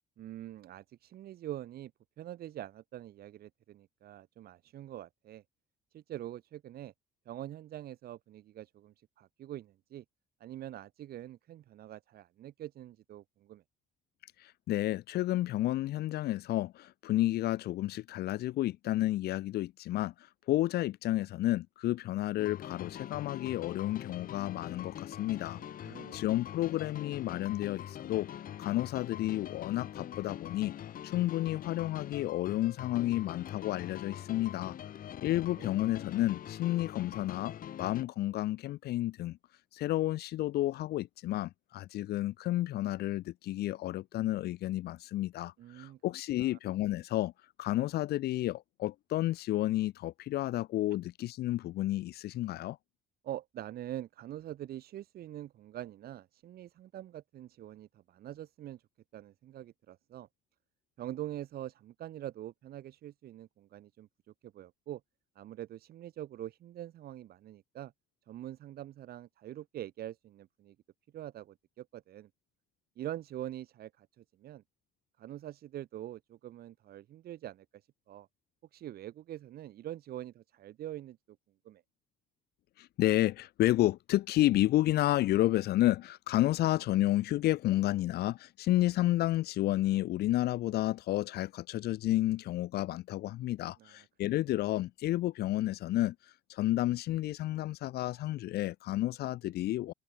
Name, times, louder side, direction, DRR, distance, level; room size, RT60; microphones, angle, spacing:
voice 1, 0.2-1.9 2.2-5.4 5.9-6.9 7.2-10.0 10.4-13.6 25.6-26.2 35.6-35.7 45.6-46.0 46.4-46.6 53.2-58.8 59.1-60.3 61.0-64.1 64.4-65.0 65.3-67.9 68.3-70.7 71.1-72.3 73.0-74.6 75.2-77.6 78.1-78.3 78.7-81.4 81.6-81.8 93.8-93.9, right 12 dB, 65° right, 3.5 m, -44 dB
voice 2, 14.4-25.6 25.9-28.3 28.6-30.7 31.0-34.7 35.2-39.4 39.7-47.3 47.6-52.8 82.8-99.9, left 15 dB, 70° left, 1.3 m, -31 dB
sound 1, 22.4-38.0, left 10 dB, 55° left, 3.9 m, -44 dB
cardioid pair, 110°, 17 cm